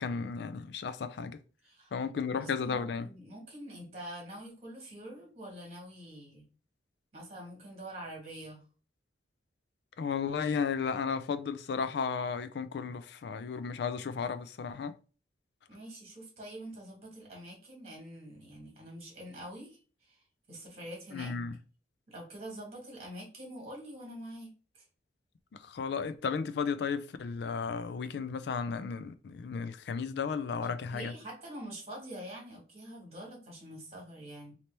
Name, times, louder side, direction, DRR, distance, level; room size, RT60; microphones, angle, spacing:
voice 1, 0.0-1.4 1.9-3.1 10.0-14.9 21.1-21.6 25.6-31.1, left 5 dB, 65° left, 0.3 m, -34 dB
voice 2, 2.4-6.5 7.1-8.6 15.7-20.2 20.5-21.3 22.1-24.5 24.7-24.8 30.6-34.5, right 1 dB, 35° right, 1.5 m, -45 dB
2.9 x 2.8 x 3.2 m
head